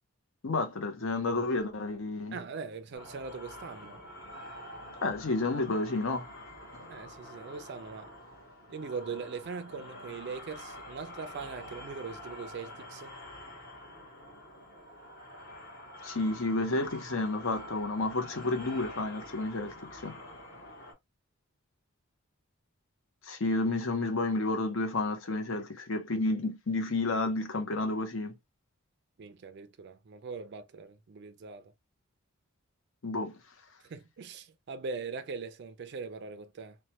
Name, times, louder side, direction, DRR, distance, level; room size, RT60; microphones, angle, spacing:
voice 1, 0.4-2.4 5.0-6.3 16.0-20.2 23.2-28.3 33.0-33.4, left 2 dB, 65° left, 0.7 m, -31 dB
voice 2, 2.3-4.0 6.9-8.2 8.7-13.2 29.2-31.7 33.8-36.8, right 5 dB, 50° right, 0.4 m, -41 dB
sound 1, 2.9-20.9, left 1 dB, 45° left, 1.1 m, -47 dB
3.1 x 2.2 x 2.8 m
head